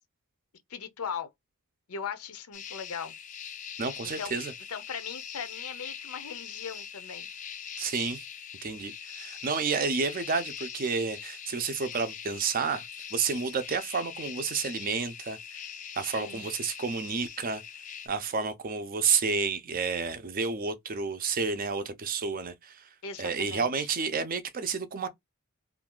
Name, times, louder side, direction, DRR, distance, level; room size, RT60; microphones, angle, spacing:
voice 1, 0.7-1.3 1.9-3.1 4.2-4.3 4.7-7.3 16.2-16.5 23.0-23.9, left 6 dB, 85° left, 0.6 m, -39 dB
sound 1, 2.5-18.1, left 8 dB, 35° left, 0.4 m, -42 dB
voice 2, 3.8-4.5 7.8-8.2 8.6-12.8 13.1-15.4 16.0-17.6 18.1-22.9 23.2-25.1, right 5 dB, 40° right, 0.5 m, -30 dB
2.6 x 2.4 x 3.6 m
head